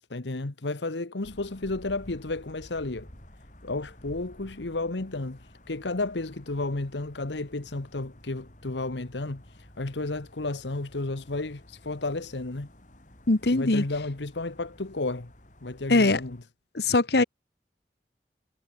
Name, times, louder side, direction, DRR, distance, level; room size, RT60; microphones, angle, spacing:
voice 1, 0.1-3.1 3.6-12.7 13.5-15.3 15.6-16.4, left 2 dB, 90° left, 1.3 m, -32 dB
sound 1, 1.2-16.4, left 1 dB, 45° left, 4.7 m, -52 dB
voice 2, 13.3-13.8 15.9-16.2 16.7-17.2, left 2 dB, 65° left, 1.2 m, -21 dB
head